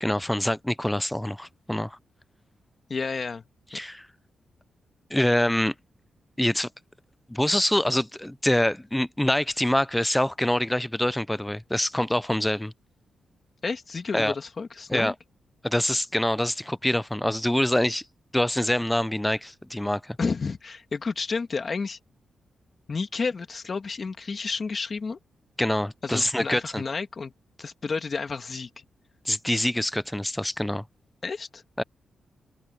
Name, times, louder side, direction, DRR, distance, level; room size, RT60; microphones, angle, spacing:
voice 1, 0.0-2.0 3.7-4.1 5.1-5.7 6.4-6.7 7.3-12.7 14.1-14.3 14.9-15.1 15.6-18.0 18.3-20.2 25.6-26.8 29.3-30.8 31.8-31.9, left 1 dB, 5° left, 0.3 m, -25 dB
voice 2, 2.9-3.4 13.6-15.1 20.2-22.0 22.9-25.2 26.0-27.3 27.6-28.8 31.2-31.6, left 4 dB, 40° left, 2.0 m, -31 dB
open air
cardioid pair, 115°, 0 cm